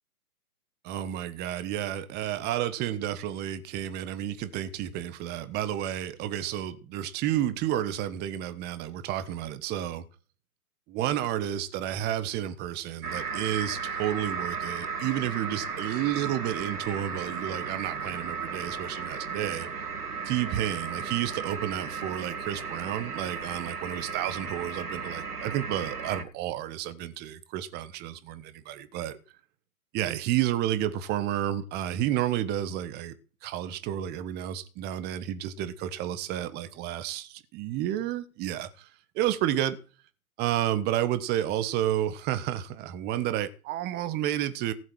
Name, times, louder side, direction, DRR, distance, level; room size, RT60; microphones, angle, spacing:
voice 1, 0.8-10.0 10.9-19.7 20.2-29.2 29.9-33.1 33.4-38.9 39.1-39.8 40.4-44.7, right 12 dB, 20° right, 1.3 m, -31 dB
sound 1, 13.0-26.2, right 5 dB, 85° right, 2.4 m, -35 dB
18.0 x 7.8 x 6.3 m
hypercardioid pair, 130°, 44 cm